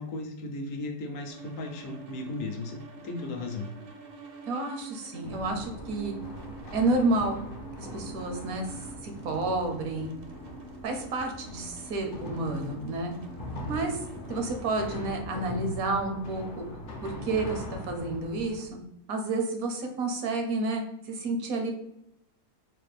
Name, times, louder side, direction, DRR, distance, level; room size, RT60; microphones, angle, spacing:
voice 1, 0.0-3.7, left 2 dB, 70° left, 4 dB, 1.0 m, -36 dB
sound 1, 1.3-14.7, right 4 dB, 55° right, 0.7 m, -47 dB
voice 2, 4.5-6.1 6.7-7.4 7.8-10.1 10.8-13.1 13.7-14.0 14.3-16.7 17.0-18.8 19.1-21.7, right 2 dB, 80° right, 4 dB, 1.2 m, -30 dB
sound 2, 5.2-18.6, left 1 dB, 50° left, 0.6 m, -41 dB
4.1 x 2.5 x 3.2 m, 0.81 s
omnidirectional pair, 1.5 m